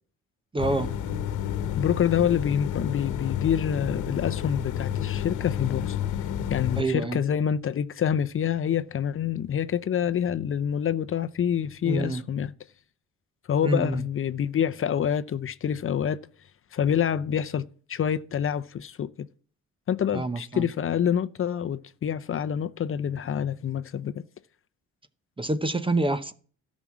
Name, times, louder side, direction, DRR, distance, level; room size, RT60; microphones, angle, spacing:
voice 1, 0.5-0.9 6.8-7.2 11.8-12.2 13.6-14.0 20.1-20.7 25.4-26.3, right 2 dB, 15° right, 0.8 m, -27 dB
sound 1, 0.6-6.8, left 9 dB, 85° left, 1.2 m, -30 dB
voice 2, 1.8-6.0 6.5-12.5 13.5-16.2 16.7-19.3 19.9-24.2, left 8 dB, 45° left, 0.7 m, -27 dB
13.0 x 6.3 x 7.3 m
cardioid pair, 90°, 30 cm